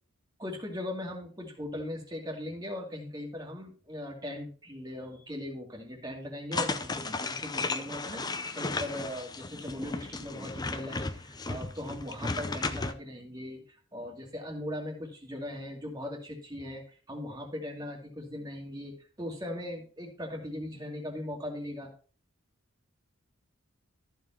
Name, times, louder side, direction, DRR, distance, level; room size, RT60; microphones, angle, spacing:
voice 1, 0.4-21.9, left 1 dB, 20° right, 0 dB, 2.3 m, -39 dB
sound 1, 6.5-12.9, left 3 dB, 20° left, 0.5 m, -35 dB
14.0 x 4.7 x 4.4 m, 0.40 s
head